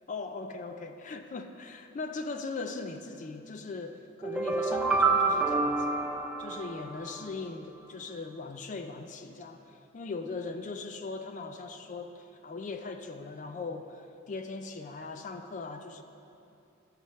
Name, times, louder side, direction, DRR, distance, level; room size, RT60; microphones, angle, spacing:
voice 1, 0.1-6.1 6.4-16.0, left 3 dB, 40° left, 7 dB, 0.4 m, -39 dB
sound 1, 4.2-7.3, right 3 dB, 5° right, 0.6 m, -28 dB
13.0 x 4.7 x 5.6 m, 2.7 s
head